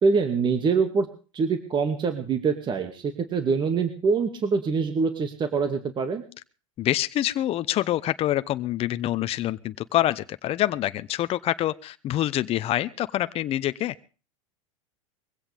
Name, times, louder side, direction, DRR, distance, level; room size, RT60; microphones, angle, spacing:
voice 1, 0.0-1.1 1.3-6.2, right 5 dB, 25° right, 7 dB, 2.3 m, -24 dB
voice 2, 6.8-13.9, left 13 dB, 35° left, 13 dB, 0.8 m, -26 dB
22.5 x 16.0 x 3.5 m, 0.36 s
hypercardioid pair, 95°, 17 cm